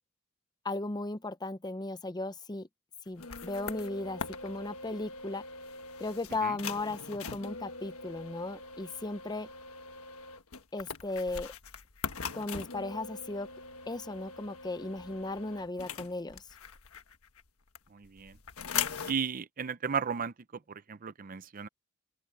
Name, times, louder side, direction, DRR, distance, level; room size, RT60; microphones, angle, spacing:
voice 1, 0.6-2.7 3.1-5.4 6.0-9.5 10.7-11.5 12.3-13.5 13.9-16.4, left 2 dB, 20° left, 0.7 m, -36 dB
sound 1, 3.1-17.4 17.8-19.2, left 6 dB, 80° left, 1.3 m, -41 dB
voice 2, 17.9-18.4 19.0-20.3 20.7-21.7, right 6 dB, 40° right, 0.6 m, -34 dB
open air
head